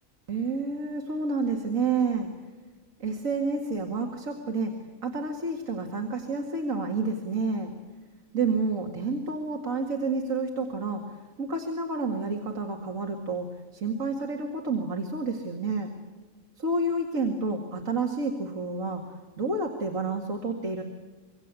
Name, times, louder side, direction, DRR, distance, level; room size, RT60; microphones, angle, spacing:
voice 1, 0.3-2.3 3.0-4.7 5.0-7.7 8.3-11.0 11.4-13.5 13.7-15.9 16.6-19.0 19.4-20.8, right 3 dB, 85° right, 2 dB, 2.5 m, -29 dB
26.0 x 23.5 x 8.2 m, 1.3 s
omnidirectional pair, 1.4 m